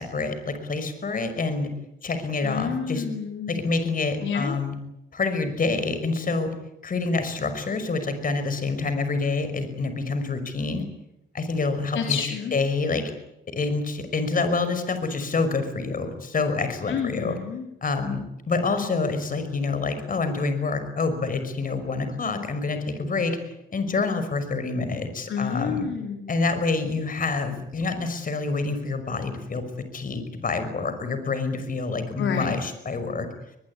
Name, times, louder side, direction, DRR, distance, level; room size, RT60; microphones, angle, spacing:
voice 1, 0.0-1.7 2.0-3.0 3.5-4.7 5.1-6.5 6.8-10.8 11.3-12.2 12.5-13.1 13.5-17.3 17.8-18.2 18.5-25.9 26.3-29.6 29.9-33.3, left 3 dB, 45° left, 9 dB, 5.6 m, -27 dB
voice 2, 2.4-3.6 4.2-4.6 11.9-12.6 16.9-17.7 25.3-26.3 32.2-32.6, left 7 dB, 75° left, 4 dB, 3.8 m, -29 dB
22.5 x 22.0 x 9.9 m, 0.83 s
cardioid pair, 105°, 20 cm